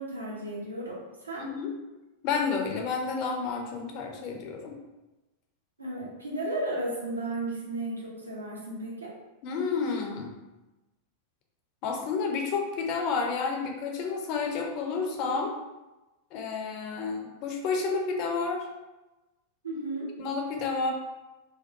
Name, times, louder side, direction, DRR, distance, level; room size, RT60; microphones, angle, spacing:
voice 1, 0.0-1.5 5.8-9.1 19.6-20.1, right 1 dB, 80° right, -4 dB, 0.6 m, -34 dB
voice 2, 1.4-1.7 2.2-4.7 9.4-10.3 11.8-15.5 16.3-18.7 20.2-20.9, left 5 dB, 40° left, 2 dB, 0.4 m, -30 dB
2.6 x 2.2 x 2.6 m, 1.1 s
figure-of-eight pair, 90°, 0 cm